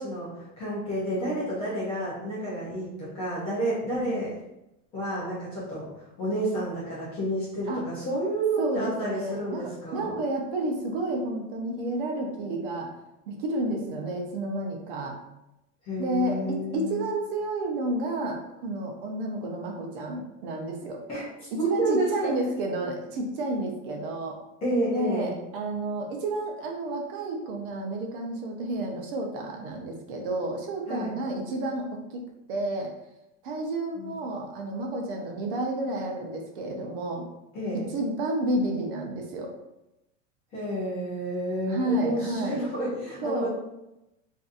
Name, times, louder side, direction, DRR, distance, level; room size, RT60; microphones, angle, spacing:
voice 1, 0.0-4.4 4.9-10.2 15.8-17.1 21.1-21.3 21.6-22.3 24.6-25.3 30.9-31.1 34.0-34.2 37.5-37.9 40.5-43.5, right 1 dB, 15° left, -8 dB, 0.4 m, -30 dB
voice 2, 8.6-12.9 13.3-15.2 16.0-21.0 21.6-24.4 24.9-32.2 32.5-32.9 33.4-37.2 37.9-39.5 41.7-42.6 43.2-43.5, right 2 dB, 45° right, 1 dB, 0.6 m, -30 dB
3.8 x 2.6 x 2.4 m, 0.89 s
supercardioid pair, 165°, 38 cm